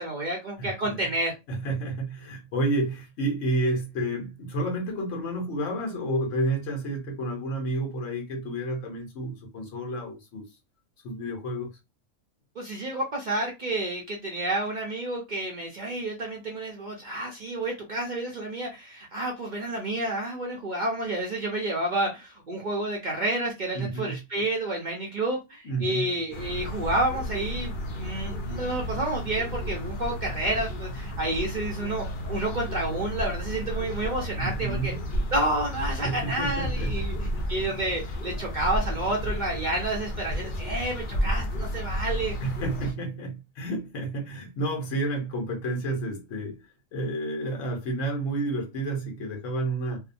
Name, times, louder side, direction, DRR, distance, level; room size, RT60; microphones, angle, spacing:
voice 1, 0.0-1.3 12.6-34.9 35.3-37.1 37.5-42.3, right 1 dB, 60° right, 0.5 m, -30 dB
voice 2, 0.6-1.1 1.5-10.4 11.0-11.7 23.7-24.2 25.6-26.0 34.4-35.0 36.0-37.1 42.4-46.6 46.9-50.0, right 2 dB, 60° left, 1.1 m, -30 dB
sound 1, 26.3-42.9, equal, 80° left, 0.4 m, -32 dB
2.7 x 2.1 x 2.5 m
omnidirectional pair, 1.6 m